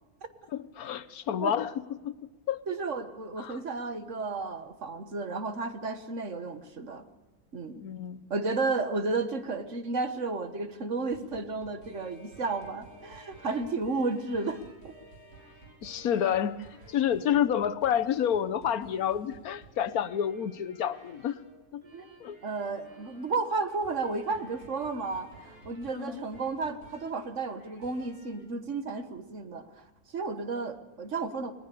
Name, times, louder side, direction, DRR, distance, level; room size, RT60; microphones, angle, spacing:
voice 1, 0.5-1.7 2.0-2.1 2.5-2.6 3.4-3.6 7.8-8.2 15.8-21.4 21.7-21.8 22.2-22.4 25.9-26.2, left 9 dB, 70° left, 13 dB, 1.4 m, -29 dB
voice 2, 2.7-7.0 7.5-7.8 8.3-14.9 21.9-22.1 22.4-29.8 30.1-31.5, right 3 dB, 55° right, 10 dB, 1.7 m, -33 dB
sound 1, 10.9-28.5 28.9-29.1, right 1 dB, 85° right, 6.7 m, -54 dB
20.5 x 19.5 x 6.9 m, 1.1 s
omnidirectional pair, 1.6 m